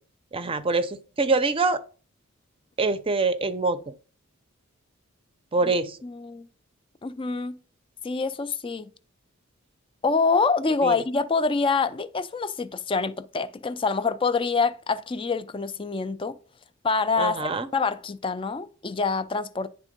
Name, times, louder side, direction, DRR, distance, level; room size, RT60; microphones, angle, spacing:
voice 1, 0.3-1.8 2.8-3.8 5.5-6.0 10.8-11.0 17.2-17.7, right 3 dB, 25° right, 0.6 m, -24 dB
voice 2, 6.0-6.5 7.0-7.6 8.0-8.9 10.0-16.4 16.8-19.7, left 4 dB, 25° left, 0.4 m, -26 dB
10.0 x 3.5 x 5.2 m
head